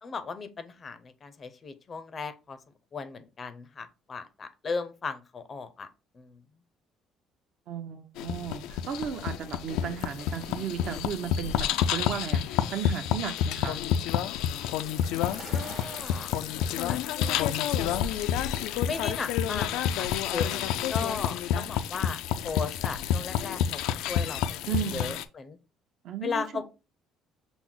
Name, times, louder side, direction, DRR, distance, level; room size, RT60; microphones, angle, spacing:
voice 1, 0.0-2.6 2.9-5.9 6.1-6.4 15.5-16.3 16.6-18.0 18.8-24.6 24.9-25.6 26.2-26.7, left 5 dB, 30° left, 11 dB, 0.5 m, -37 dB
voice 2, 7.7-14.0 24.7-25.1 26.0-26.7, right 8 dB, 55° right, 7 dB, 0.7 m, -35 dB
sound 1, 8.2-25.2, left 9 dB, 85° left, 0.3 m, -29 dB
sound 2, 8.9-21.3, right 4 dB, 35° right, 1.0 m, -52 dB
6.0 x 2.0 x 3.7 m, 0.29 s
cardioid pair, 155°, 0 cm